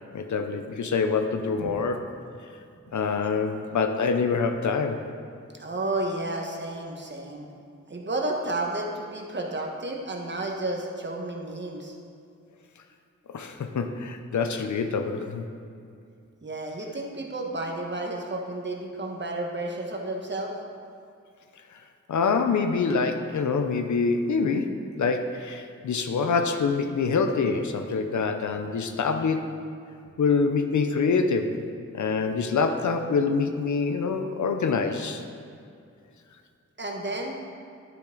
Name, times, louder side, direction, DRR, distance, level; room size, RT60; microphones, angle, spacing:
voice 1, 0.1-2.0 2.9-5.0 13.3-15.5 22.1-29.5 30.2-31.6 31.9-35.2, left 5 dB, 70° left, 6 dB, 0.7 m, -25 dB
voice 2, 5.6-7.5 7.9-12.0 16.4-20.5 36.8-37.4, right 2 dB, 40° right, 0 dB, 1.2 m, -32 dB
10.0 x 5.9 x 3.9 m, 2.4 s
wide cardioid pair, 70°, 30 cm